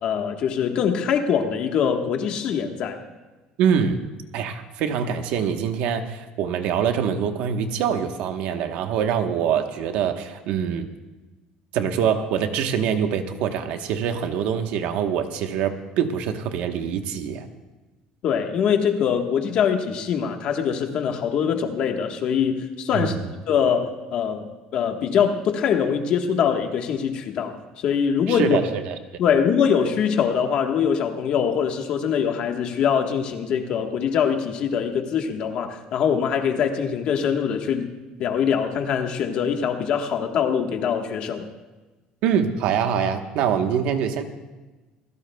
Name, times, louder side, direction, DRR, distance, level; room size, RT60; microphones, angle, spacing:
voice 1, 0.0-3.0 18.2-23.2 23.5-28.6 29.2-37.9 38.2-41.4, left 7 dB, 45° left, 4 dB, 1.3 m, -23 dB
voice 2, 3.6-4.0 4.3-10.9 11.7-17.5 22.9-23.2 28.3-29.0 42.2-44.2, right 8 dB, 60° right, 6 dB, 1.1 m, -24 dB
27.0 x 16.5 x 2.3 m, 1.2 s
cardioid pair, 180°, 2 cm